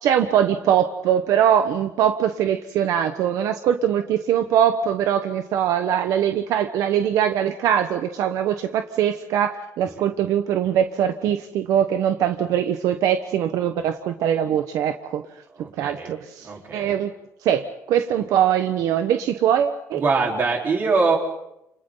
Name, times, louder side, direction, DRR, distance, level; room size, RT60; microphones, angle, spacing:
voice 1, 0.0-15.2 15.8-17.1 17.4-20.0, right 9 dB, 75° right, 7 dB, 1.1 m, -22 dB
voice 2, 15.6-16.1 16.4-16.9 19.9-21.2, right 4 dB, 35° right, 0 dB, 4.1 m, -23 dB
30.0 x 29.0 x 3.9 m, 0.84 s
cardioid pair, 165°, 6 cm